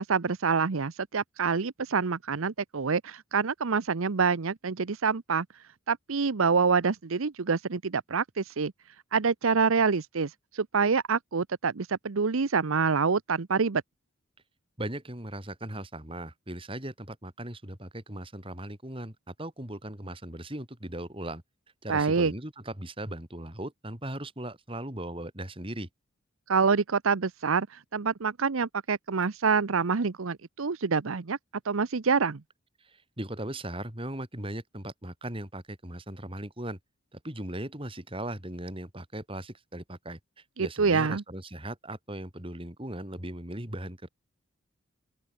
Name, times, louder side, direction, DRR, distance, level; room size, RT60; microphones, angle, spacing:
voice 1, 0.0-5.5 5.9-8.7 9.1-13.8 21.9-22.3 26.5-31.4 31.6-32.4 40.6-41.2, right 5 dB, 80° right, 0.7 m, -26 dB
voice 2, 14.8-21.4 21.8-25.9 32.8-36.8 37.1-40.2 40.6-44.1, right 1 dB, 25° right, 4.3 m, -38 dB
open air
head